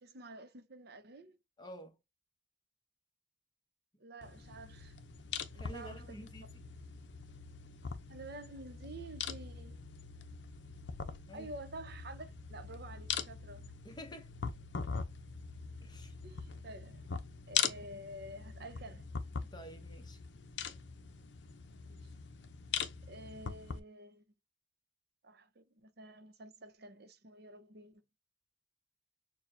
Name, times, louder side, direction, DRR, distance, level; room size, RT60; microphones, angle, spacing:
voice 1, 0.0-1.4 4.0-5.0 5.5-6.2 8.1-9.8 11.3-13.7 16.2-17.1 17.5-19.1 21.9-22.1 23.1-24.2 25.2-28.0, right 1 dB, 60° right, 0.8 m, -49 dB
voice 2, 1.6-2.0 5.5-6.5 11.3-11.5 13.8-14.3 15.8-16.1 19.5-20.2, equal, 25° left, 0.9 m, -49 dB
sound 1, 4.2-23.8, left 6 dB, 65° left, 0.6 m, -42 dB
6.6 x 2.3 x 2.7 m
head